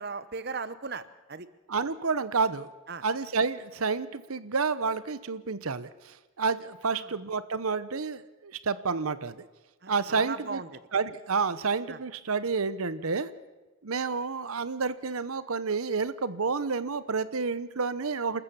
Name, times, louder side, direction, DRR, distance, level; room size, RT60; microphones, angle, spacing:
voice 1, 0.0-1.5 2.9-3.0 6.9-7.1 9.8-10.8 11.9-12.0, right 4 dB, 50° right, 14 dB, 1.0 m, -38 dB
voice 2, 1.7-2.7 3.0-5.9 6.4-9.4 9.9-10.6 10.9-13.3 13.8-18.4, right 4 dB, 90° right, 15 dB, 1.0 m, -29 dB
29.0 x 14.0 x 7.0 m, 1.2 s
head